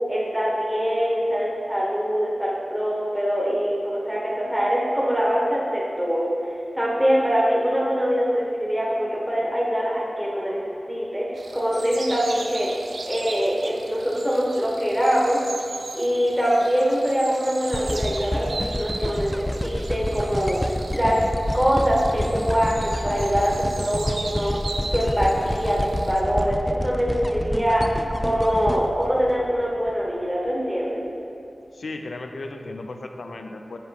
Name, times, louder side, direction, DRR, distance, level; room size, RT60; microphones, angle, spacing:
voice 1, 0.1-12.7 13.0-15.4 15.9-20.6 20.9-21.2 21.5-26.6 26.8-31.0, equal, 5° right, -5 dB, 1.3 m, -23 dB
sound 1, 11.3-26.2, right 3 dB, 85° right, 0.5 m, -38 dB
sound 2, 17.7-29.9 30.5-30.6, left 1 dB, 15° left, 0.3 m, -29 dB
voice 2, 31.7-33.8, left 2 dB, 85° left, 5 dB, 0.6 m, -35 dB
7.4 x 6.8 x 4.2 m, 2.6 s
wide cardioid pair, 90°, 0 cm